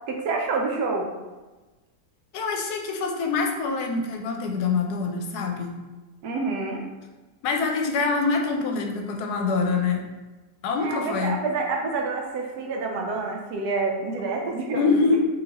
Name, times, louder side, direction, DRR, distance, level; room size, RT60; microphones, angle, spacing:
voice 1, 0.1-1.1 6.2-6.8 10.8-15.2, right 3 dB, 80° right, 1 dB, 1.2 m, -28 dB
voice 2, 2.3-5.7 7.4-10.0 10.6-11.3 14.7-15.2, left 4 dB, 80° left, 2 dB, 1.1 m, -25 dB
3.9 x 3.1 x 2.9 m, 1.2 s
omnidirectional pair, 1.7 m